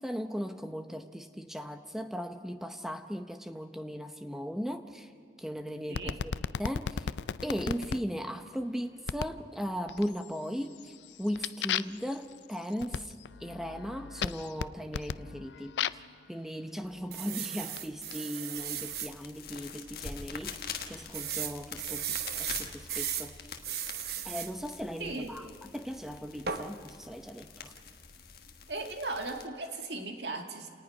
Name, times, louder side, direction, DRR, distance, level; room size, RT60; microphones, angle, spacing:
voice 1, 0.0-5.1 5.4-6.3 6.6-7.1 7.4-13.1 13.4-16.0 16.3-23.4 24.2-25.4 25.7-27.7, equal, ahead, 7 dB, 0.7 m, -37 dB
sound 1, 5.9-8.0 9.1-9.4 9.9-10.4 10.7-16.1 16.9-18.2, left 7 dB, 85° left, 0.4 m, -36 dB
voice 2, 5.9-6.2 25.0-25.4 28.7-30.7, right 2 dB, 80° right, 4 dB, 2.0 m, -37 dB
sound 2, 17.1-19.1 19.7-19.8 20.0-20.1 21.1-23.3 23.6-24.5 26.5-26.7, right 9 dB, 65° right, 1.0 m, -36 dB
sound 3, 18.6-29.5, left 6 dB, 60° left, 1.4 m, -45 dB
29.5 x 19.0 x 5.4 m, 2.3 s
head